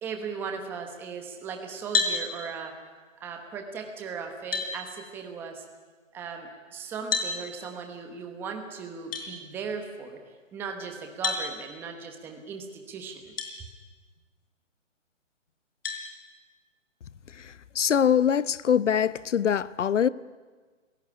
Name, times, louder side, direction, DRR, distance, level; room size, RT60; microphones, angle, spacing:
voice 1, 0.0-2.7 3.2-5.6 6.1-10.2 10.5-13.3, right 5 dB, 5° right, 1.1 m, -37 dB
sound 1, 1.9-2.2 3.9-4.0 4.5-4.7 7.1-7.3 9.1-9.3 11.2-11.5 13.4-13.5 14.2-14.3 15.8-16.0, left 4 dB, 50° left, 5.2 m, -27 dB
voice 2, 17.4-20.1, left 8 dB, 65° left, 0.9 m, -23 dB
29.0 x 17.5 x 9.9 m
hypercardioid pair, 165°, 39 cm